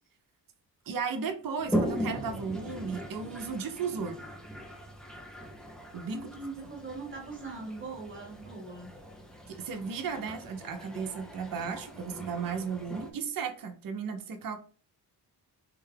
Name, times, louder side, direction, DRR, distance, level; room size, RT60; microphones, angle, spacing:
voice 1, 0.9-4.2 5.9-6.2 9.5-14.6, right 5 dB, 55° right, 6 dB, 0.6 m, -35 dB
Toilet flush, 1.6-13.1, equal, ahead, 0.4 m, -39 dB
voice 2, 6.1-8.9, right 3 dB, 30° right, 2 dB, 1.0 m, -41 dB
3.7 x 2.2 x 3.3 m, 0.43 s
wide cardioid pair, 125°, 39 cm